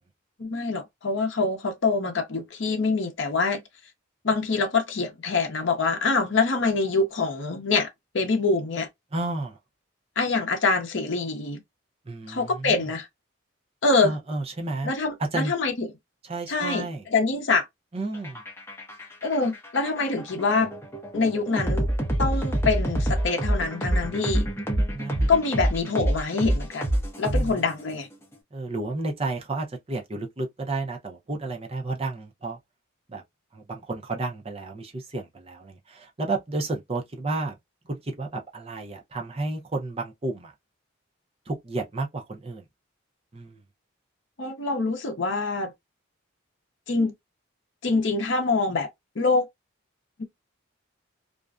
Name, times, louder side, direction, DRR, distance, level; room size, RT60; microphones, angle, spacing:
voice 1, 0.4-3.6 4.2-7.9 8.1-8.9 10.2-11.6 12.3-13.1 13.8-14.1 14.8-15.9 16.5-16.9 17.1-17.7 19.2-20.7 21.1-21.9 22.2-24.5 25.3-26.9 27.2-28.1 44.4-45.7 46.9-47.1 47.8-48.9 49.2-49.5 50.2-50.3, left 3 dB, 60° left, 0.7 m, -25 dB
voice 2, 9.1-9.6 12.0-12.9 14.0-14.9 15.3-15.5 16.2-17.1 17.9-18.4 24.9-25.3 27.3-27.6 28.5-32.6 33.1-33.2 33.5-37.5 37.8-40.5 41.5-42.7 43.3-43.6, right 2 dB, 30° right, 0.5 m, -32 dB
sound 1, 18.1-27.9, right 1 dB, 10° left, 0.7 m, -27 dB
2.5 x 2.1 x 2.3 m
head